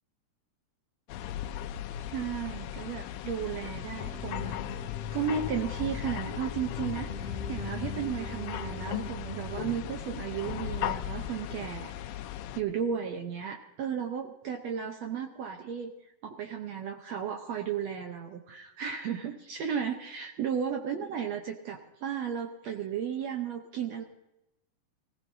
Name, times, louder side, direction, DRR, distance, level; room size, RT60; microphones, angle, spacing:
sound 1, 1.1-12.6, left 11 dB, 85° left, 2.3 m, -37 dB
voice 1, 2.1-4.6 5.1-11.9 12.6-15.9 16.2-24.0, right 8 dB, 65° right, 3 dB, 1.9 m, -34 dB
sound 2, 4.0-9.4, left 2 dB, 20° right, 1.3 m, -41 dB
24.0 x 16.0 x 2.8 m, 0.93 s
omnidirectional pair, 3.8 m